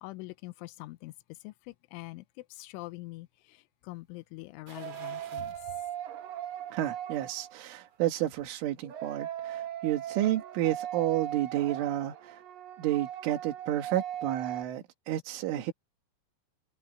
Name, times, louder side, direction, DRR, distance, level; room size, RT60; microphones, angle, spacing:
voice 1, 0.0-1.1 1.4-2.2 2.5-3.6 3.8-5.5, left 20 dB, 85° left, 3.1 m, -44 dB
sound 1, 4.7-5.7 6.1-6.2 7.7-8.5 8.9-9.0, right 5 dB, 40° right, 3.6 m, -53 dB
sound 2, 4.8-7.9 8.8-14.6, right 11 dB, 60° right, 2.7 m, -39 dB
voice 2, 6.7-12.4 12.8-15.7, right 13 dB, 85° right, 4.3 m, -31 dB
omnidirectional pair, 5.5 m